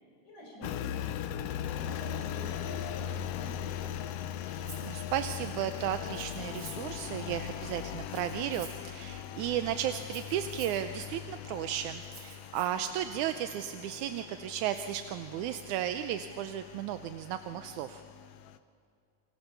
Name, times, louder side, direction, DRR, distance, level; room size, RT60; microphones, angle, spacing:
voice 1, 0.2-1.4 1.8-4.2, left 1 dB, 85° left, -1 dB, 7.7 m, -47 dB
Engine, 0.6-18.6, left 10 dB, 70° left, 1.7 m, -40 dB
voice 2, 4.5-18.0, right 11 dB, 85° right, 9 dB, 2.2 m, -34 dB
Rattle (instrument), 4.7-4.9 6.0-6.9 8.0-8.9 10.0-10.8 12.0-12.7, right 3 dB, 45° right, 5.8 m, -50 dB
28.5 x 24.5 x 6.8 m, 2.3 s
omnidirectional pair, 3.5 m